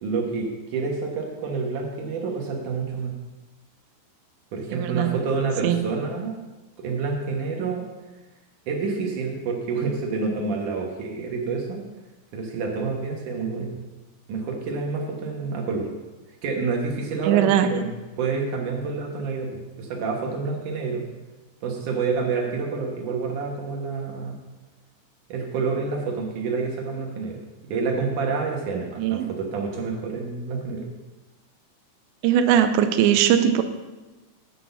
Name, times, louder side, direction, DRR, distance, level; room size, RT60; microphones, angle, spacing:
voice 1, 0.0-3.1 4.5-6.4 6.8-7.8 8.7-11.8 12.3-13.7 14.3-15.9 16.4-17.9 18.2-21.0 21.6-24.4 25.3-27.4 27.7-30.8, right 4 dB, 65° right, 0 dB, 2.2 m, -28 dB
voice 2, 4.7-5.2 5.6-5.9 17.2-17.7 29.0-29.3 32.2-33.6, right 10 dB, 90° right, 8 dB, 2.9 m, -20 dB
9.5 x 6.2 x 6.9 m, 1.2 s
omnidirectional pair, 4.9 m